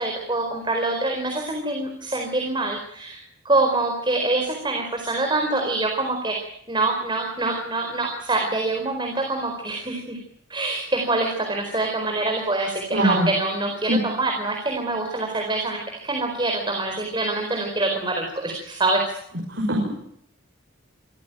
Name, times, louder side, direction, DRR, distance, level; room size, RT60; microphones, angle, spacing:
voice 1, 0.0-10.2 10.5-19.0, right 2 dB, 25° right, 2 dB, 4.4 m, -25 dB
voice 2, 12.9-13.3 13.9-14.0 19.5-19.9, right 1 dB, 65° right, 0 dB, 5.7 m, -21 dB
25.5 x 16.0 x 9.1 m, 0.70 s
head